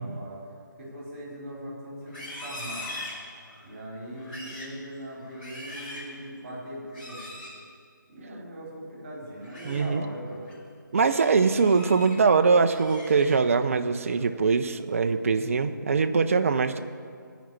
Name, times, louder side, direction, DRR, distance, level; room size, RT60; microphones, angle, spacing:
voice 1, 0.0-2.9 3.6-7.4 8.1-10.5, equal, 20° right, -4 dB, 3.8 m, -40 dB
Livestock farm animals working animals, 2.0-3.7 4.1-4.8 5.2-6.1 6.9-7.6 9.3-9.8 10.3-10.5 11.0-12.2 12.6-13.6 14.0-14.3 14.7-15.2, left 1 dB, 25° left, 3.0 m, -41 dB
voice 2, 9.6-10.0 10.9-16.8, right 5 dB, 40° right, 8 dB, 0.6 m, -22 dB
14.0 x 5.2 x 9.4 m, 2.2 s
hypercardioid pair, 170°, 11 cm